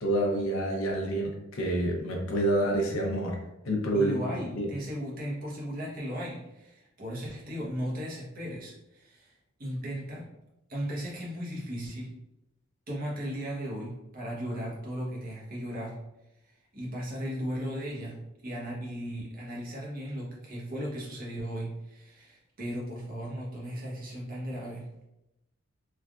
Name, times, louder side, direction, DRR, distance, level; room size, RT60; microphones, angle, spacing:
voice 1, 0.0-3.4 3.6-4.2 4.5-4.7, right 1 dB, 70° left, 0 dB, 0.7 m, -28 dB
voice 2, 3.9-9.3 9.6-10.3 10.7-12.1 12.9-16.0 16.7-24.8, equal, 40° right, -4 dB, 0.9 m, -36 dB
3.3 x 2.4 x 2.3 m, 0.89 s
head